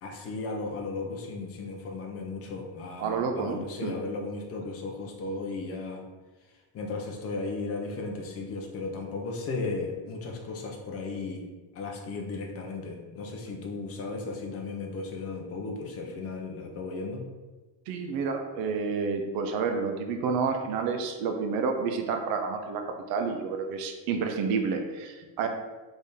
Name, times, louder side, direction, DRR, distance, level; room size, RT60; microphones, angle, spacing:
voice 1, 0.0-6.0 6.7-11.5 11.7-17.3, left 3 dB, 30° left, 2 dB, 0.6 m, -35 dB
voice 2, 3.0-4.0 17.9-25.5, right 5 dB, 50° right, 4 dB, 0.5 m, -29 dB
3.5 x 3.4 x 4.1 m, 1.2 s
cardioid pair, 175°, 45 cm